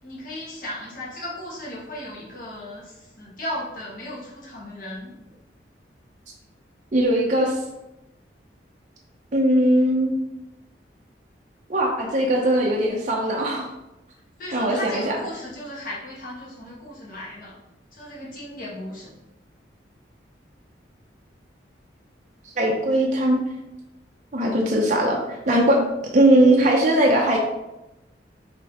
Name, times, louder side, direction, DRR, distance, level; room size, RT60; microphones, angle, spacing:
voice 1, 0.0-5.1 12.1-12.6 14.4-17.6 17.9-19.1 24.4-24.6, left 1 dB, 50° left, -5 dB, 1.4 m, -36 dB
voice 2, 6.9-7.6 9.3-10.2 11.7-13.7 14.5-15.1 22.6-23.4 24.3-25.2 25.5-25.8 26.1-27.4, right 1 dB, 45° right, -1 dB, 0.6 m, -19 dB
5.1 x 3.1 x 2.9 m, 0.94 s
head